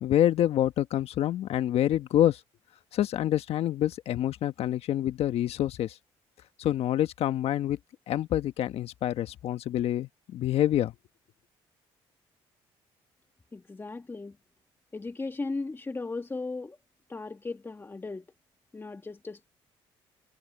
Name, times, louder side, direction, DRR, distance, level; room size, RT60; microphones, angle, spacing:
voice 1, 0.0-2.4 2.9-5.9 6.6-7.8 8.1-10.9, left 12 dB, 70° left, 1.3 m, -27 dB
voice 2, 13.5-14.4 14.9-16.8 17.1-18.2 18.7-19.5, left 3 dB, 20° left, 1.5 m, -36 dB
supercardioid pair, 80°, 11 cm